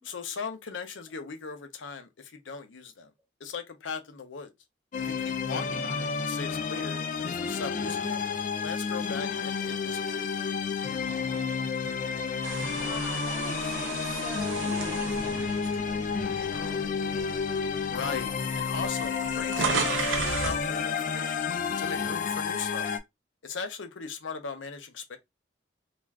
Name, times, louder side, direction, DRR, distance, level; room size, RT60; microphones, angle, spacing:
voice 1, 0.0-3.1 3.4-4.5 5.0-8.2 8.6-10.3 17.9-21.5 21.8-22.9 23.4-25.2, left 5 dB, 85° left, 0.6 m, -38 dB
sound 1, 4.9-23.0, left 5 dB, 40° left, 0.3 m, -31 dB
sound 2, 12.4-16.7 17.2-17.4 18.3-18.4 18.6-20.7, right 5 dB, 80° right, 0.5 m, -33 dB
voice 2, 12.8-16.9, equal, 15° right, 0.7 m, -44 dB
2.4 x 2.3 x 3.2 m
head